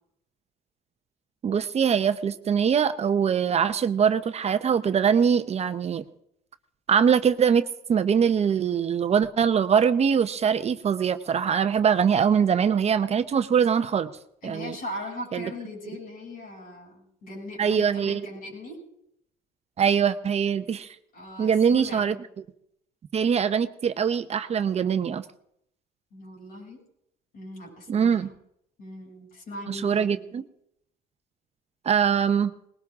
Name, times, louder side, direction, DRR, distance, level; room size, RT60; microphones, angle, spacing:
voice 1, 1.4-6.0 6.9-14.1 14.4-14.7 15.3-15.5 17.6-18.3 19.8-20.9 21.4-22.1 23.1-25.2 27.9-28.3 29.7-30.4 31.8-32.5, right 7 dB, 40° right, 10 dB, 0.8 m, -23 dB
voice 2, 14.4-18.8 21.1-22.2 26.1-26.8 27.3-28.3 28.8-30.2, left 1 dB, 60° left, -1 dB, 7.8 m, -39 dB
20.0 x 18.0 x 3.7 m, 0.73 s
cardioid pair, 110°, 17 cm